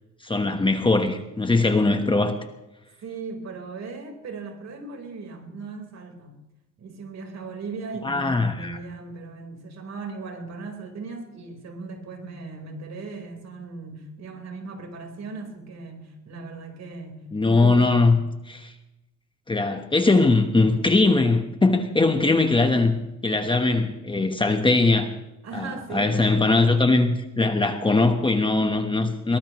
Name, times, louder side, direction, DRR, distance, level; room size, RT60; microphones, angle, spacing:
voice 1, 0.2-2.4 8.0-8.8 17.3-18.2 18.5-18.7 19.5-25.1 25.5-29.4, left 3 dB, 15° left, 6 dB, 1.3 m, -21 dB
voice 2, 3.0-6.4 6.8-18.1 25.4-26.2, right 4 dB, 60° right, 3 dB, 4.4 m, -38 dB
22.5 x 19.0 x 3.2 m, 0.95 s
cardioid pair, 140°, 30 cm